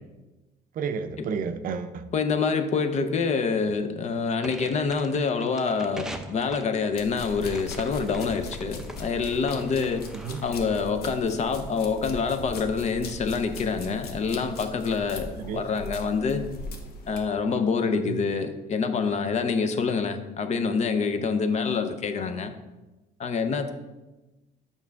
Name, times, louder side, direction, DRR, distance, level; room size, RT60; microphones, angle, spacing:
voice 1, 0.8-2.0 10.2-10.4 15.4-15.7 17.8-18.2, right 6 dB, 55° right, 9 dB, 0.5 m, -31 dB
voice 2, 2.1-10.1 10.4-16.5 17.1-22.5 23.2-23.7, left 5 dB, 45° left, 9 dB, 0.6 m, -26 dB
sound 1, 4.4-10.8, right 1 dB, 5° right, 0.5 m, -43 dB
sound 2, 7.0-17.2, left 2 dB, 70° left, 0.9 m, -39 dB
7.3 x 5.3 x 3.5 m, 1.1 s
cardioid pair, 110°, 17 cm